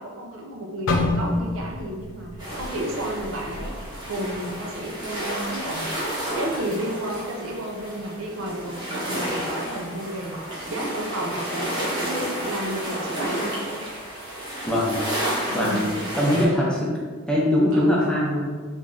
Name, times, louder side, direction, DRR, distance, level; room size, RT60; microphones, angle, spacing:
voice 1, 0.0-6.1 6.3-10.4 10.7-14.0 15.5-15.9 17.7-17.9, right 1 dB, 75° right, 0 dB, 0.6 m, -32 dB
sound 1, 0.9-4.9 5.3-5.5 6.2-6.5, left 2 dB, 70° left, 0.4 m, -29 dB
sound 2, 2.4-16.4, right 1 dB, 20° right, 0.9 m, -31 dB
voice 2, 14.7-15.0 15.5-15.8 16.2-16.9 17.3-18.4, left 1 dB, 5° left, -6 dB, 0.6 m, -21 dB
3.3 x 2.5 x 3.6 m, 1.4 s
head